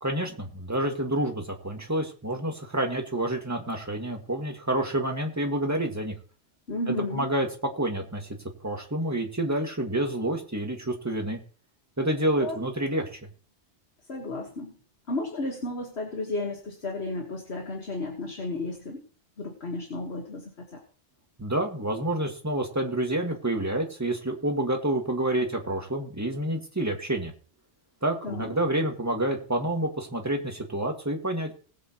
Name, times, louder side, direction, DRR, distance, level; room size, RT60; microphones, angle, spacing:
voice 1, 0.0-6.2 6.9-7.5 7.7-8.3 8.6-11.4 12.0-13.1 21.4-27.3 28.0-31.5, right 1 dB, 15° right, 2 dB, 1.9 m, -28 dB
voice 2, 6.7-7.3 12.4-12.6 14.1-14.8 15.1-19.0 19.4-20.8 28.2-28.5, left 2 dB, 60° left, 2 dB, 1.8 m, -33 dB
20.0 x 7.9 x 3.0 m, 0.41 s
omnidirectional pair, 1.2 m